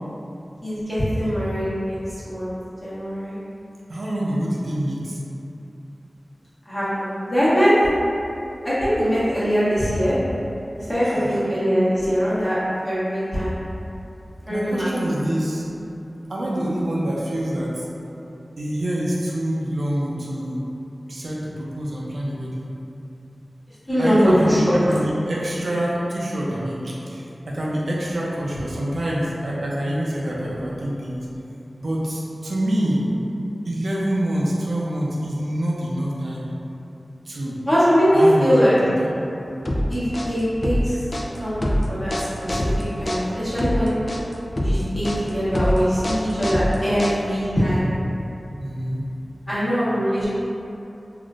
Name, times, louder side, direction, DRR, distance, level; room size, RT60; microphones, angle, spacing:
voice 1, 0.6-2.0 2.2-2.5 2.8-3.4 6.7-7.7 8.6-10.2 10.9-12.6 12.8-13.6 14.5-14.9 23.9-24.7 37.7-38.7 39.9-41.0 41.4-43.9 44.6-47.9 49.5-50.2, equal, 20° left, -13 dB, 1.2 m, -21 dB
voice 2, 3.9-5.2 11.0-11.4 14.5-15.7 16.3-17.9 18.6-20.6 21.1-22.7 24.0-31.3 31.8-33.1 33.6-36.5 37.3-37.6 38.1-39.1 48.6-49.0, right 1 dB, 80° right, -5 dB, 0.5 m, -26 dB
sound 1, 39.7-47.5, equal, 40° left, 0.3 m, -24 dB
3.5 x 2.4 x 2.4 m, 2.8 s
wide cardioid pair, 70°, 0 cm